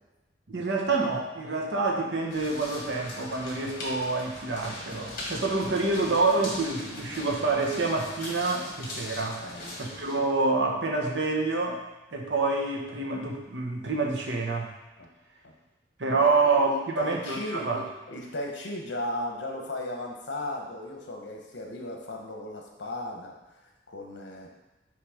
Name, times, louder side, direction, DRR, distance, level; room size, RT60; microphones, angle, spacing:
voice 1, 0.5-9.4 9.8-11.8 12.1-14.7 16.0-17.8, right 3 dB, 75° right, 0 dB, 1.0 m, -27 dB
sound 1, 2.3-10.1, left 1 dB, 50° left, 1.7 m, -40 dB
voice 2, 9.4-9.8 15.0-15.1 15.4-15.6 16.2-23.3 23.9-24.5, left 1 dB, 75° left, 1 dB, 1.0 m, -36 dB
6.0 x 3.3 x 4.9 m, 1.0 s
head